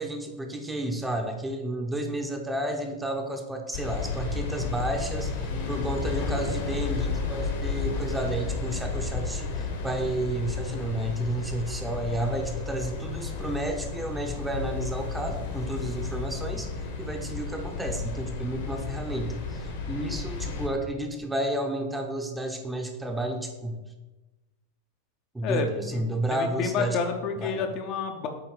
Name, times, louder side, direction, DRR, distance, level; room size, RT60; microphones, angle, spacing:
voice 1, 0.0-16.7 17.0-23.8 25.3-27.0 27.3-27.7, right 1 dB, 10° right, 3 dB, 0.8 m, -31 dB
sound 1, 3.7-20.7, left 4 dB, 55° left, 1.2 m, -32 dB
voice 2, 5.5-6.0 25.4-26.0 26.3-28.3, left 5 dB, 40° left, 4 dB, 0.7 m, -30 dB
8.6 x 3.1 x 4.8 m, 1.1 s
figure-of-eight pair, 90°, 0 cm